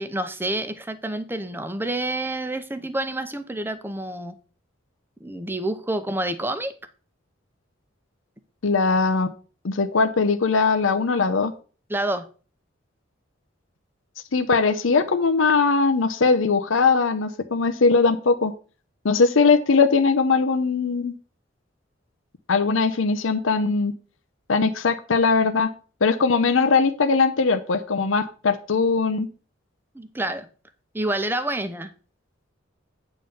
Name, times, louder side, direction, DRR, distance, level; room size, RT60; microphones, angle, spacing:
voice 1, 0.0-4.4 5.2-6.7 11.9-12.3 29.9-30.5 30.9-31.9, right 1 dB, 10° right, 0.7 m, -28 dB
voice 2, 8.6-9.3 9.6-11.5 14.3-18.5 19.0-21.1 22.5-23.9 24.5-25.7 26.0-29.3, left 4 dB, 90° left, 0.7 m, -20 dB
9.1 x 3.8 x 6.8 m
head